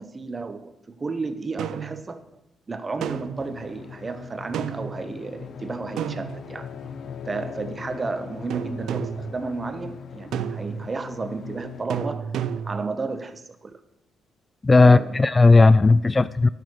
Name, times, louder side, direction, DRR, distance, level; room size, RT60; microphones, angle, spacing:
voice 1, 0.0-2.2 2.7-6.7 7.3-12.3 12.6-13.8 14.8-15.2, right 3 dB, 35° right, 1.1 m, -32 dB
sound 1, 1.6-2.0 3.0-3.5 4.5-5.0 6.0-6.8 8.5-9.3 10.3-10.9 11.9-12.9, right 8 dB, 75° right, 0.5 m, -31 dB
sound 2, 3.4-11.9, left 7 dB, 60° left, 0.7 m, -40 dB
voice 2, 14.6-16.5, left 3 dB, 25° left, 0.3 m, -15 dB
9.6 x 6.7 x 6.6 m
supercardioid pair, 55°, 0 cm